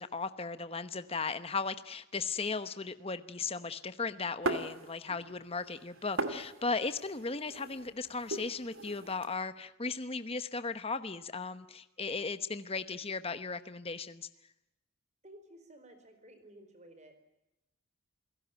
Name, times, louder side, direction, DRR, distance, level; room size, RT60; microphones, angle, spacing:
voice 1, 0.0-14.3, left 4 dB, 25° left, 11 dB, 1.0 m, -36 dB
sound 1, 4.4-5.3 5.6-9.3, right 2 dB, 70° right, 2.5 m, -38 dB
voice 2, 15.2-17.1, right 1 dB, 30° right, 9 dB, 4.6 m, -54 dB
28.5 x 17.0 x 9.1 m, 0.94 s
head